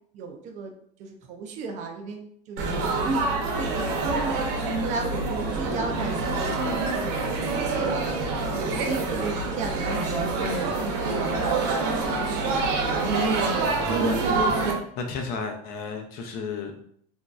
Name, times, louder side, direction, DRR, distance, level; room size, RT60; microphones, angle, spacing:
voice 1, 0.1-0.7 1.0-4.4 4.8-8.1 8.5-12.1, right 3 dB, 35° right, 4 dB, 0.4 m, -34 dB
Laughter / Chatter / Crowd, 2.6-14.7, right 3 dB, 60° right, 0.7 m, -26 dB
voice 2, 13.5-14.3 15.0-16.8, left 4 dB, 45° left, 4 dB, 0.5 m, -34 dB
3.0 x 2.6 x 2.3 m, 0.65 s
cardioid pair, 160°, 21 cm